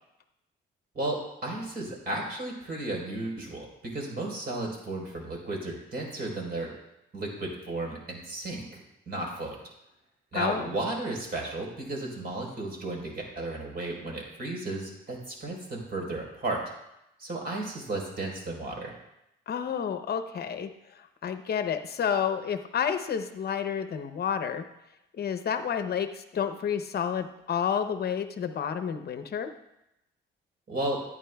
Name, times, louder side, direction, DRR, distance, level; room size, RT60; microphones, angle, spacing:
voice 1, 0.9-6.7 7.1-9.6 10.3-16.6 17.2-18.9 30.7-31.0, right 2 dB, 50° right, -1 dB, 4.0 m, -34 dB
voice 2, 19.5-20.7 21.2-24.6 25.1-29.5, left 7 dB, 55° left, 9 dB, 0.7 m, -30 dB
14.5 x 9.3 x 2.3 m, 0.85 s
cardioid pair, 90°, 20 cm